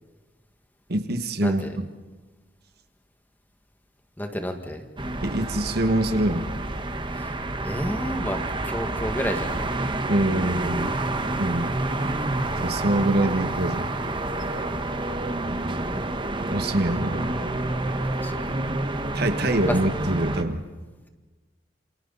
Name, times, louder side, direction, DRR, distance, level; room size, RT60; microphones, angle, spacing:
voice 1, 0.9-1.8 5.2-6.5 10.1-11.0 11.4-11.8 12.6-13.9 15.4-15.7 16.5-17.4 19.1-20.6, right 1 dB, 55° right, 7 dB, 1.5 m, -25 dB
voice 2, 1.4-1.8 4.2-4.8 7.2-7.4 7.6-9.7 11.8-11.9 14.7-14.9 18.1-18.6 19.4-19.8, equal, 10° left, 5 dB, 1.8 m, -31 dB
sound 1, 5.0-20.4, right 2 dB, 25° right, 1.3 m, -28 dB
28.0 x 27.0 x 4.1 m, 1.3 s
head